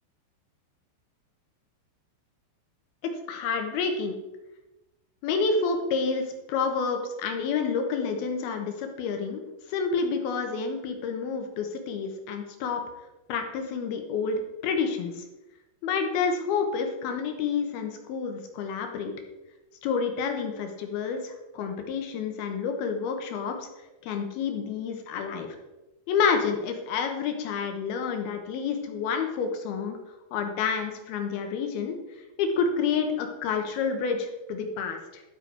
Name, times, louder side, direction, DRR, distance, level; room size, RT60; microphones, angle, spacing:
voice 1, 3.3-4.2 5.2-9.4 9.7-12.8 13.3-15.2 15.8-19.1 19.8-23.7 24.0-25.6 26.1-30.0 30.3-32.0 32.4-35.2, left 5 dB, 80° left, 5 dB, 3.2 m, -29 dB
12.0 x 7.9 x 4.8 m, 1.0 s
omnidirectional pair, 4.4 m